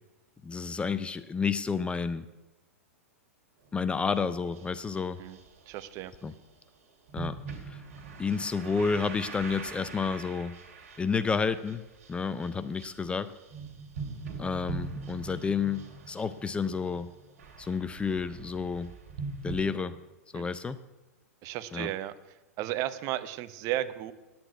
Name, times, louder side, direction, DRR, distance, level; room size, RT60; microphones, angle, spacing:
voice 1, 0.4-2.2 3.7-5.2 6.2-6.3 7.1-7.4 7.7-7.8 8.2-10.5 11.0-11.8 12.1-13.3 14.4-17.1 17.6-18.9 19.4-19.9 20.3-20.8 21.7-21.9, left 5 dB, 15° left, 13 dB, 0.5 m, -30 dB
sound 1, 3.6-3.8 4.1-6.4 7.1-19.7, right 4 dB, 60° right, 2.8 m, -43 dB
voice 2, 5.7-6.1 20.3-20.5 21.4-22.1 22.6-24.1, right 14 dB, 40° right, 13 dB, 0.8 m, -34 dB
9.9 x 8.7 x 9.3 m, 1.1 s
hypercardioid pair, 105°, 8 cm